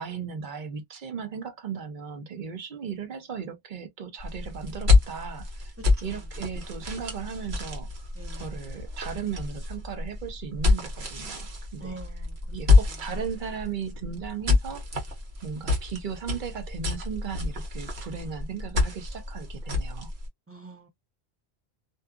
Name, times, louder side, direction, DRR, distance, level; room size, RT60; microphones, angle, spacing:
voice 1, 0.0-5.7 6.0-8.1 8.4-12.0 12.5-14.9 15.4-20.1, right 6 dB, 55° right, 0.8 m, -36 dB
sound 1, 4.2-20.3, left 4 dB, 85° right, 1.3 m, -27 dB
voice 2, 8.2-8.5 11.8-12.4 20.5-20.9, right 3 dB, 20° right, 0.4 m, -43 dB
2.6 x 2.3 x 2.2 m
omnidirectional pair, 1.0 m